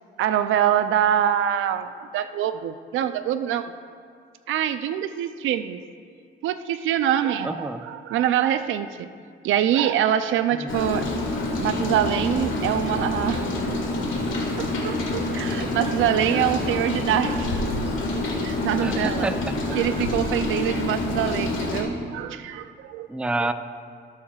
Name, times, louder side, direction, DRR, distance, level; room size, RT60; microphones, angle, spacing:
voice 1, 0.2-1.9 2.1-3.7 4.5-5.8 6.4-9.1 9.4-11.1 11.6-13.9 14.6-18.0 18.4-19.3 19.7-23.1 23.4-23.5, right 10 dB, 80° right, 11 dB, 0.5 m, -25 dB
voice 2, 7.4-7.8 10.6-10.7 18.8-19.6 20.5-20.7 23.1-23.5, right 2 dB, 5° right, 9 dB, 0.4 m, -28 dB
Rain, 10.7-21.8, left 2 dB, 75° left, 1.8 m, -27 dB
17.5 x 7.2 x 2.4 m, 2.2 s
cardioid pair, 90°, 20 cm